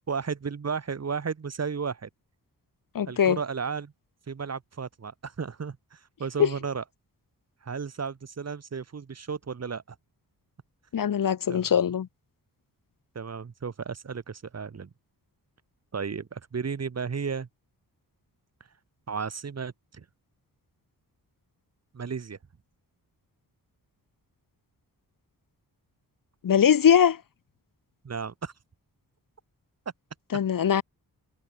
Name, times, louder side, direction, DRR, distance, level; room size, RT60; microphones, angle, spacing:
voice 1, 0.1-2.1 3.1-3.9 4.3-6.8 7.6-10.0 11.5-11.7 13.2-14.9 15.9-17.5 19.1-20.1 21.9-22.4 28.0-28.5, right 5 dB, 40° right, 2.0 m, -34 dB
voice 2, 2.9-3.4 6.4-6.5 10.9-12.1 26.4-27.2 30.3-30.8, left 8 dB, 60° left, 1.2 m, -21 dB
wide cardioid pair, 140°, 38 cm